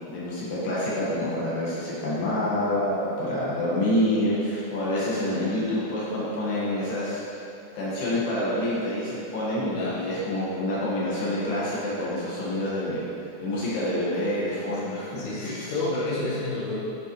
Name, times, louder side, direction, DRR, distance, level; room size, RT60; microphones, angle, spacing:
voice 1, 0.0-7.2 7.7-13.1 13.4-15.7, left 1 dB, 60° left, -8 dB, 3.3 m, -27 dB
voice 2, 15.2-16.8, left 2 dB, 80° left, -6 dB, 1.2 m, -29 dB
9.7 x 5.9 x 3.3 m, 2.7 s
omnidirectional pair, 4.9 m